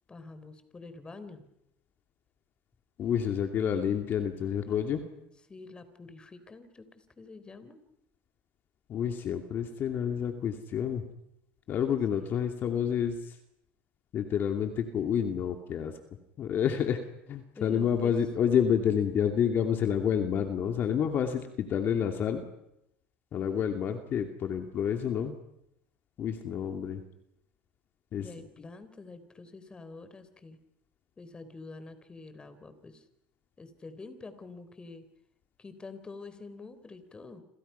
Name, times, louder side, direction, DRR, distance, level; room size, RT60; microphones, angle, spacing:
voice 1, 0.1-1.4 5.5-7.8 12.1-12.3 17.5-18.1 28.2-30.6 31.2-33.0 33.6-35.1 35.6-37.4, left 3 dB, 20° left, 11 dB, 3.7 m, -47 dB
voice 2, 3.0-5.0 8.9-11.0 11.7-13.3 14.1-16.0 16.4-17.0 17.3-22.4 23.3-25.3 26.2-27.0 28.1-28.3, left 8 dB, 45° left, 5 dB, 2.6 m, -29 dB
29.0 x 26.5 x 5.8 m, 0.81 s
supercardioid pair, 105°, 5 cm